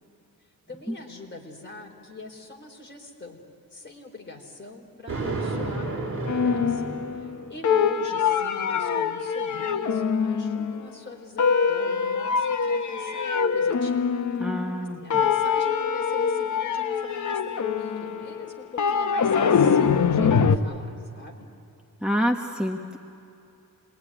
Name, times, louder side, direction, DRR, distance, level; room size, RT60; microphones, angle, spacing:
voice 1, 0.7-3.4 3.7-6.9 7.2-14.5 15.0-21.5, left 3 dB, 35° left, 1 dB, 4.1 m, -43 dB
Thunder, 5.1-7.6, right 3 dB, 40° right, 4.3 m, -31 dB
sound 1, 6.3-7.4 7.6-10.9 11.4-14.8 15.1-20.6, left 6 dB, 60° left, 1.1 m, -24 dB
voice 2, 14.4-15.2 22.0-23.0, equal, 5° right, 2 dB, 1.1 m, -27 dB
27.0 x 21.5 x 9.9 m, 2.7 s
wide cardioid pair, 140°, 33 cm